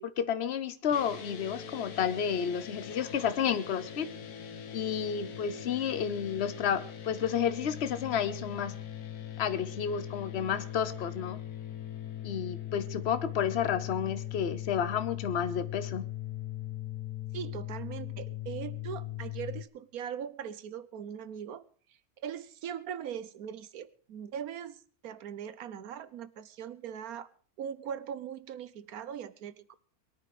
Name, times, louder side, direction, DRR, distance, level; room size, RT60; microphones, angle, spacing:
voice 1, 0.0-4.1 4.7-8.8 9.4-11.4 12.2-16.1, left 8 dB, 50° left, 13 dB, 1.2 m, -31 dB
sound 1, 0.9-19.6, left 12 dB, 85° left, 1.8 m, -40 dB
voice 2, 17.3-21.7 22.2-27.3 27.6-29.7, right 8 dB, 75° right, 16 dB, 1.3 m, -40 dB
22.0 x 9.5 x 4.9 m, 0.44 s
omnidirectional pair, 1.6 m